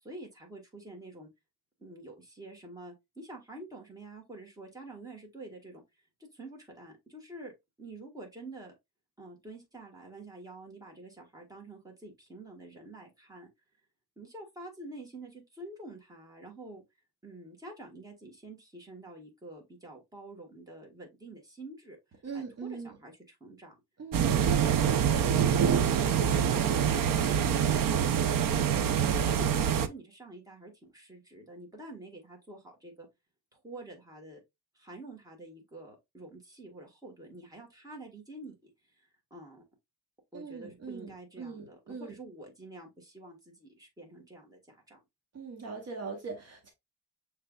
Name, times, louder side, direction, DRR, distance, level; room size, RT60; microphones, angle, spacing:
voice 1, 0.0-1.3 1.8-5.8 6.2-7.5 7.8-8.7 9.2-13.5 14.2-16.8 17.2-22.0 22.3-23.7 25.2-28.2 28.8-33.1 33.5-34.4 34.7-38.7 39.0-39.6 40.3-45.0, right 2 dB, 10° right, 1.6 m, -47 dB
voice 2, 22.2-23.0 24.0-24.3 40.3-42.2 45.3-46.7, right 5 dB, 45° right, 1.1 m, -41 dB
sound 1, 24.1-29.9, right 8 dB, 65° right, 0.6 m, -25 dB
6.6 x 3.3 x 2.4 m
wide cardioid pair, 150°, 37 cm